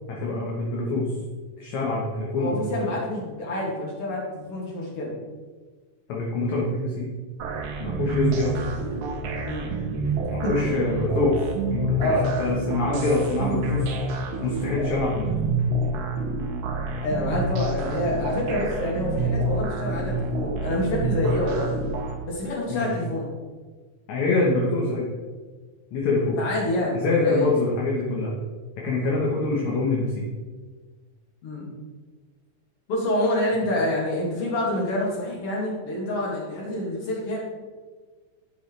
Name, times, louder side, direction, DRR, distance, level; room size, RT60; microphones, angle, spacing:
voice 1, 0.1-1.1 1.6-2.6 6.1-7.1 7.8-8.6 10.3-12.1 12.4-13.9 14.4-15.4 22.7-22.9 24.1-25.1 25.9-26.4 26.9-28.3 28.8-30.2, left 2 dB, 60° left, -4 dB, 2.4 m, -25 dB
voice 2, 2.4-5.1 9.4-9.7 10.4-10.8 12.0-12.3 17.0-21.7 22.2-23.2 26.4-27.5 29.0-29.1 31.4-31.7 32.9-37.4, left 1 dB, 45° left, -4 dB, 3.1 m, -27 dB
sound 1, 7.4-22.2, right 2 dB, 65° right, 2.2 m, -28 dB
11.0 x 7.8 x 3.4 m, 1.4 s
omnidirectional pair, 4.0 m